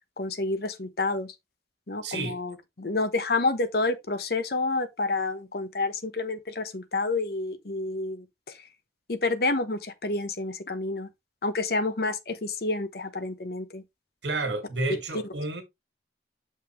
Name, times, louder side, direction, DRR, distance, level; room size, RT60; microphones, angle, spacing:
voice 1, 0.2-1.3 1.9-8.6 9.1-11.1 11.4-13.8, left 3 dB, 60° left, 1.0 m, -29 dB
voice 2, 2.0-2.4 14.2-15.6, right 2 dB, 85° right, 2.1 m, -30 dB
7.0 x 5.6 x 3.1 m
head